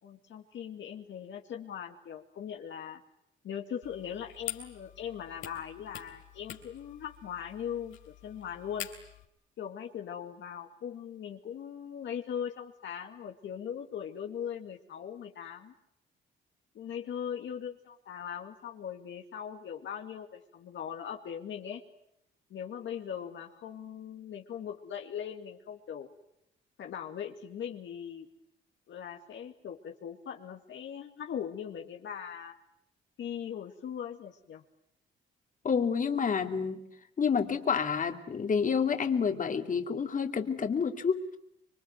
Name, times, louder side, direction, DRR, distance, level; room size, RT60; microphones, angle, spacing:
voice 1, 0.0-3.0 3.4-8.9 9.6-15.7 16.7-21.8 22.5-26.1 26.8-28.3 28.9-32.6 33.2-34.6, left 8 dB, 70° left, 3 dB, 2.2 m, -40 dB
sound 1, 3.8-9.2, left 11 dB, 85° left, 3.4 m, -46 dB
voice 2, 35.6-36.8 37.2-41.2, left 6 dB, 40° left, 5 dB, 2.6 m, -29 dB
26.5 x 23.5 x 9.3 m, 0.79 s
cardioid pair, 90°, 20 cm